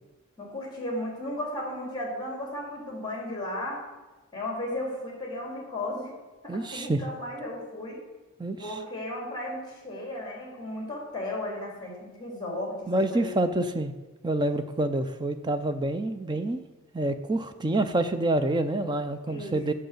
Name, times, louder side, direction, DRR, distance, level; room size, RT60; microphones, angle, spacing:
voice 1, 0.4-3.8 4.3-6.1 6.4-8.0 8.6-13.6 19.3-19.6, left 1 dB, 20° left, -1 dB, 2.8 m, -35 dB
voice 2, 6.5-7.0 8.4-8.7 12.9-13.9 14.2-16.6 16.9-19.7, right 2 dB, 20° right, 9 dB, 0.5 m, -27 dB
7.9 x 6.8 x 6.6 m, 1.2 s
head